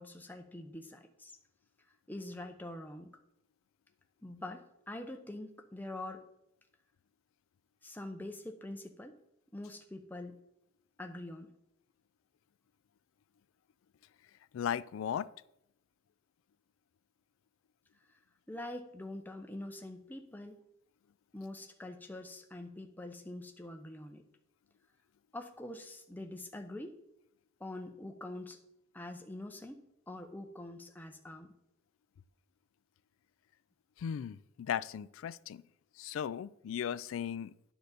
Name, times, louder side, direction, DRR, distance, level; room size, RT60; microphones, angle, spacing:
voice 1, 0.0-1.3 2.1-3.2 4.2-6.2 7.8-9.2 9.5-10.4 11.0-11.5 18.5-20.6 21.3-24.2 25.3-26.9 27.6-28.6 28.9-31.5, left 1 dB, 10° left, 4 dB, 0.7 m, -45 dB
voice 2, 14.5-15.3 34.0-35.6 36.0-37.5, left 8 dB, 90° left, 17 dB, 0.3 m, -37 dB
9.6 x 4.0 x 6.6 m, 0.82 s
head